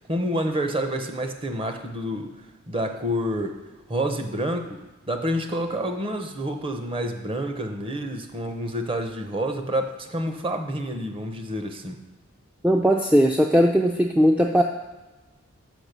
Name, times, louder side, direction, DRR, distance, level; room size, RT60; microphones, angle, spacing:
voice 1, 0.1-2.4 2.7-3.6 3.9-4.8 5.1-12.0, equal, 25° right, 6 dB, 0.7 m, -28 dB
voice 2, 12.6-14.6, equal, 5° right, 1 dB, 0.3 m, -18 dB
6.1 x 5.5 x 6.7 m, 1.1 s
head